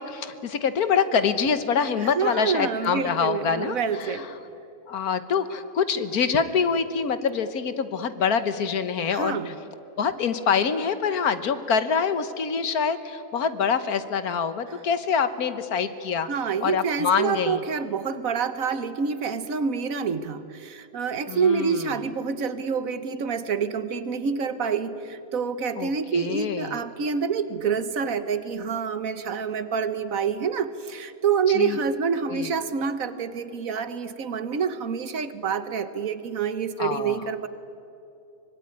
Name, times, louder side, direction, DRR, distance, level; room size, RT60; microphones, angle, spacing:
voice 1, 0.0-4.2 4.9-9.5 10.0-16.3 16.6-17.6 21.3-21.8 25.8-26.7 31.6-31.8 32.3-32.5 36.8-37.2, left 6 dB, 70° left, 12 dB, 1.6 m, -25 dB
voice 2, 2.0-4.3 9.1-9.6 16.2-37.5, right 6 dB, 60° right, 13 dB, 1.4 m, -27 dB
24.5 x 21.0 x 9.7 m, 2.8 s
omnidirectional pair, 1.7 m